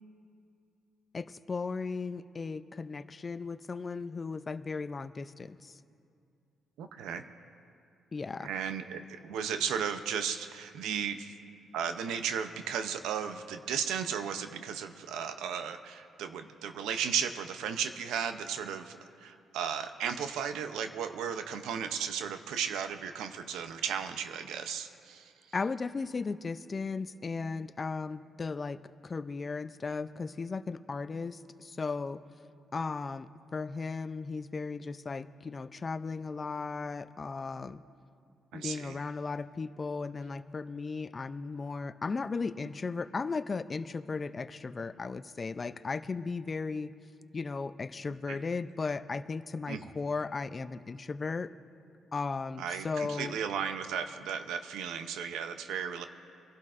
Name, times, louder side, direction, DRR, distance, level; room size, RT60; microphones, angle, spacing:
voice 1, 1.1-5.7 8.1-8.5 25.5-32.2 32.7-37.8 38.5-46.9 47.3-51.5 52.1-53.4, left 4 dB, 35° left, 13 dB, 0.4 m, -36 dB
voice 2, 6.8-7.2 8.4-11.4 11.7-25.3 38.5-39.0 48.3-48.4 49.7-49.9 52.6-56.0, right 7 dB, 85° right, 9 dB, 0.6 m, -35 dB
23.5 x 12.0 x 2.5 m, 2.5 s
cardioid pair, 90°, 0 cm